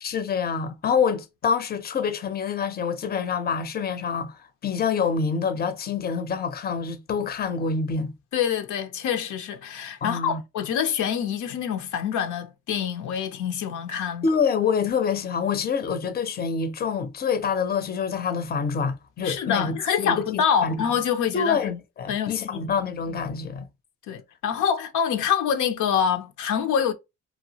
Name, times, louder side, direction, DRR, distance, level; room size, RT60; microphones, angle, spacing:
voice 1, 0.0-8.1 10.0-10.4 14.2-20.8 21.3-23.6, left 6 dB, 30° left, 0.5 m, -26 dB
voice 2, 8.3-14.3 19.2-21.8 22.1-22.8 24.1-26.9, left 8 dB, 80° left, 0.6 m, -26 dB
2.8 x 2.3 x 2.7 m
cardioid pair, 90°, 30 cm